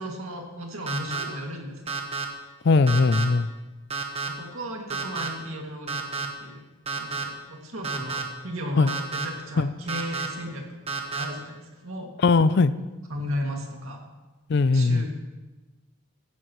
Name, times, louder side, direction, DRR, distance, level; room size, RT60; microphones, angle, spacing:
voice 1, 0.0-2.0 4.3-6.6 7.0-12.1 13.1-14.1 14.7-15.1, equal, 70° right, 1 dB, 2.3 m, -35 dB
sound 1, 0.9-1.2 1.9-2.2 2.9-3.2 3.9-4.3 4.9-5.3 5.9-6.3 6.9-7.2 7.8-8.2 8.9-9.2 9.9-10.3 10.9-11.2, right 4 dB, 30° right, 1.3 m, -30 dB
voice 2, 2.6-3.5 8.8-8.9 9.6-9.7 12.2-12.7 14.5-15.1, left 3 dB, 50° left, 15 dB, 0.4 m, -19 dB
16.5 x 14.0 x 3.1 m, 1.2 s
head